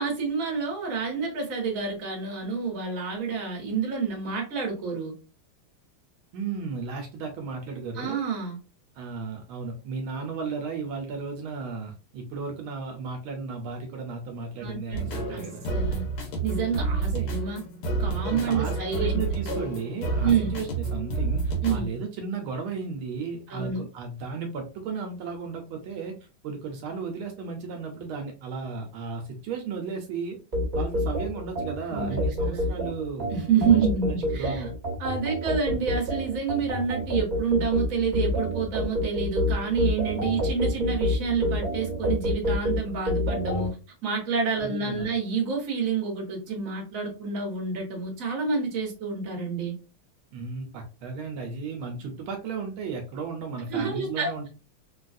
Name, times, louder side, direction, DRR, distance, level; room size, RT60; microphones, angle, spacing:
voice 1, 0.0-5.1 8.0-8.6 14.6-16.0 16.4-17.6 18.0-19.2 20.2-20.6 21.6-21.9 23.5-23.9 31.9-32.2 32.4-32.7 33.3-34.6 35.0-43.7 44.0-49.7 53.7-54.3, right 5 dB, 45° right, 0 dB, 1.4 m, -28 dB
voice 2, 6.3-8.2 8.9-15.6 17.0-17.3 18.3-26.2 26.4-30.4 30.7-33.3 33.7-34.7 44.6-45.1 50.3-54.5, right 5 dB, 80° right, 3 dB, 1.5 m, -34 dB
sound 1, 14.9-21.9, right 3 dB, 85° left, 1.8 m, -29 dB
sound 2, 30.5-43.7, left 1 dB, 15° right, 1.0 m, -28 dB
3.9 x 2.3 x 2.5 m, 0.33 s
omnidirectional pair, 2.3 m